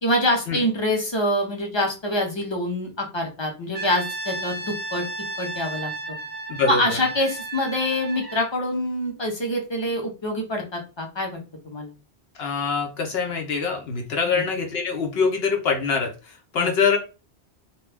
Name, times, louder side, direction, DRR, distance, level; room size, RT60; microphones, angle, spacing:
voice 1, 0.0-5.0 5.4-6.2 6.7-11.4 11.6-11.9 14.3-14.4 16.6-16.7, left 1 dB, 30° left, 2 dB, 0.6 m, -25 dB
Brass instrument, 3.7-8.6, right 2 dB, 40° right, 0.6 m, -34 dB
voice 2, 6.6-7.0 12.3-17.0, left 5 dB, 70° left, 3 dB, 0.9 m, -24 dB
2.7 x 2.2 x 3.3 m, 0.30 s
omnidirectional pair, 1.1 m